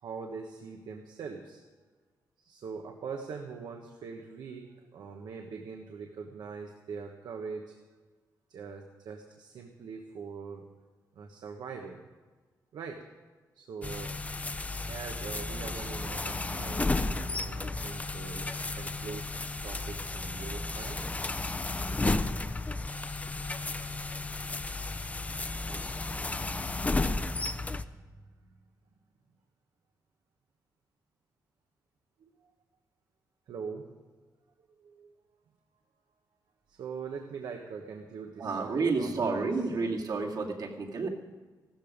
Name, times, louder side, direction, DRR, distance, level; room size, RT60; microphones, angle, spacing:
voice 1, 0.0-1.6 2.4-7.8 8.5-10.7 11.2-12.0 12.7-13.1 13.5-14.2 14.9-21.0 27.2-27.9 32.2-32.3 33.5-33.9 34.8-35.2 36.7-40.0, right 5 dB, 85° right, 2 dB, 1.2 m, -42 dB
sound 1, 13.8-27.8, left 2 dB, 20° left, 0.6 m, -33 dB
voice 2, 38.4-41.1, right 4 dB, 65° right, 0 dB, 2.3 m, -30 dB
15.0 x 13.0 x 5.2 m, 1.4 s
cardioid pair, 100°, 7 cm